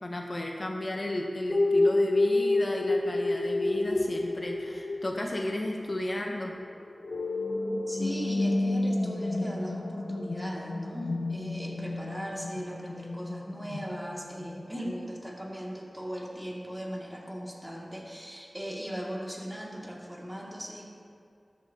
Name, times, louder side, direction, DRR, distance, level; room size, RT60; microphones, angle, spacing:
voice 1, 0.0-6.5, left 1 dB, 45° left, 1 dB, 0.8 m, -33 dB
sound 1, 1.5-14.6, left 2 dB, 75° left, 0.7 m, -30 dB
voice 2, 7.9-20.9, equal, 10° right, -3 dB, 2.1 m, -38 dB
13.5 x 10.5 x 2.8 m, 2.3 s
wide cardioid pair, 60°, 0 cm